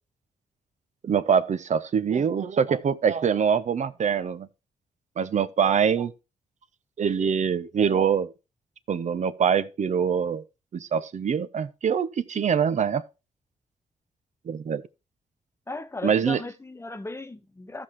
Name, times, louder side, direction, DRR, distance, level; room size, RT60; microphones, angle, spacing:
voice 1, 1.0-4.5 5.2-6.1 7.0-8.3 8.9-10.4 10.7-13.0 14.5-14.8 16.0-16.4, right 7 dB, 55° right, 0.8 m, -24 dB
voice 2, 15.7-17.8, left 2 dB, 20° left, 1.1 m, -36 dB
14.0 x 5.9 x 3.2 m
supercardioid pair, 55°, 14 cm